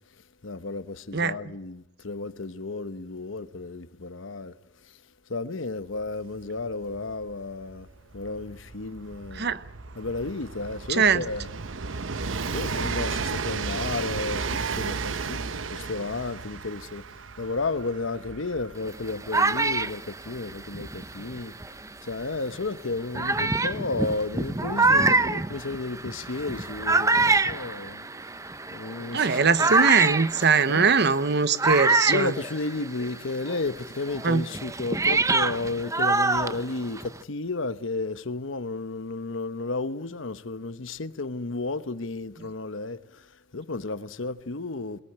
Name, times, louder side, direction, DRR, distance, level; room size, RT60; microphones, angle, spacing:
voice 1, 0.4-4.6 4.8-5.0 5.3-7.9 8.1-9.6 10.0-11.5 12.5-17.0 17.4-28.3 28.7-29.7 30.7-30.9 32.1-45.0, left 3 dB, 80° left, 1.0 m, -33 dB
Train, 6.0-6.1 6.3-22.9 23.9-24.0, right 4 dB, 85° right, 0.9 m, -34 dB
voice 2, 10.9-11.2 29.1-32.3 34.2-34.4, right 5 dB, 60° right, 1.0 m, -21 dB
sound 1, 18.8-21.9 22.5-22.6 23.1-33.2 33.5-37.2, right 3 dB, 15° right, 0.7 m, -25 dB
23.5 x 18.0 x 8.7 m
head